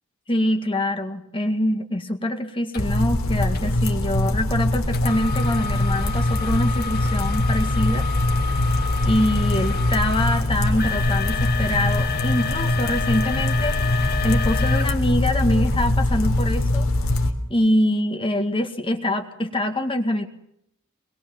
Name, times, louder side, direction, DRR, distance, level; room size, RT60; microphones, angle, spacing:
voice 1, 0.3-8.1 8.4-8.5 9.0-16.8 17.5-20.3, left 1 dB, 25° left, 5 dB, 1.9 m, -24 dB
sound 1, 2.7-2.8 3.5-3.8 4.9-15.8 16.4-16.5 17.1-17.2, left 6 dB, 45° left, 3.1 m, -31 dB
sound 2, 2.8-17.3, left 1 dB, 80° left, 3.5 m, -22 dB
26.5 x 22.0 x 7.1 m, 0.75 s
head